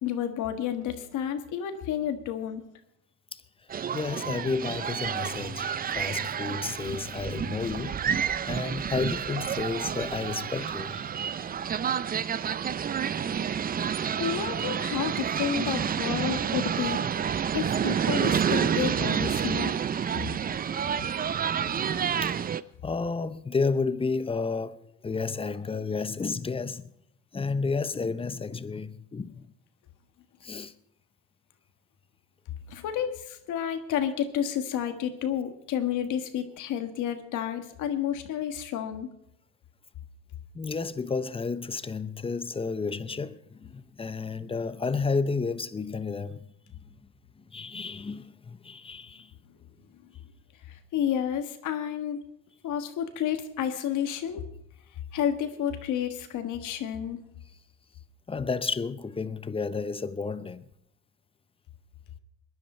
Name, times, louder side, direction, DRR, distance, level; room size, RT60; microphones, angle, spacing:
voice 1, 0.0-2.6 14.2-19.8 32.7-39.1 50.7-52.2 52.6-54.4 55.1-57.2, left 9 dB, 70° left, 1.6 m, -31 dB
sound 1, 3.7-22.6, right 8 dB, 30° right, 0.5 m, -29 dB
voice 2, 3.9-8.0 8.5-11.1 22.2-22.4 22.8-26.9 27.3-29.4 30.4-30.7 40.5-46.5 47.4-49.3 58.3-60.7, left 4 dB, 15° left, 0.7 m, -31 dB
21.0 x 10.5 x 4.3 m
supercardioid pair, 90°, 32 cm